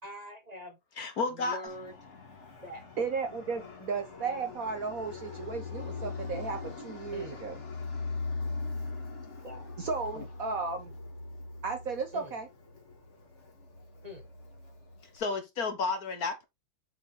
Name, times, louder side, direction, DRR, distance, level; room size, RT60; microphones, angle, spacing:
voice 1, 0.0-0.8 1.3-1.9 2.6-2.8 7.1-7.4 9.4-9.7 12.1-12.3 14.0-14.2, equal, 20° right, 1.5 m, -44 dB
voice 2, 1.0-1.6 10.1-10.2 15.1-16.4, left 4 dB, 55° left, 1.5 m, -32 dB
Fixed-wing aircraft airplane, 1.7-15.2, left 3 dB, 35° left, 2.3 m, -41 dB
voice 3, 3.0-7.6 9.8-10.9 11.6-12.5, right 4 dB, 55° right, 1.2 m, -34 dB
7.2 x 4.2 x 4.1 m
omnidirectional pair, 2.1 m